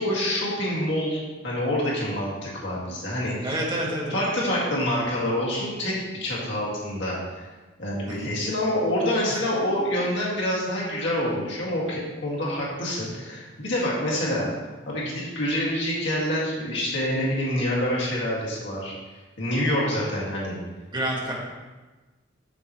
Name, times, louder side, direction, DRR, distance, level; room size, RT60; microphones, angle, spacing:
voice 1, 0.0-3.6 4.1-7.4 7.8-14.5 14.9-18.9 19.4-20.6, left 1 dB, 65° left, -5 dB, 1.9 m, -26 dB
voice 2, 3.4-4.2 8.1-8.3 9.3-9.4 20.9-21.3, right 1 dB, 25° right, -3 dB, 1.6 m, -28 dB
7.1 x 6.8 x 3.0 m, 1.2 s
head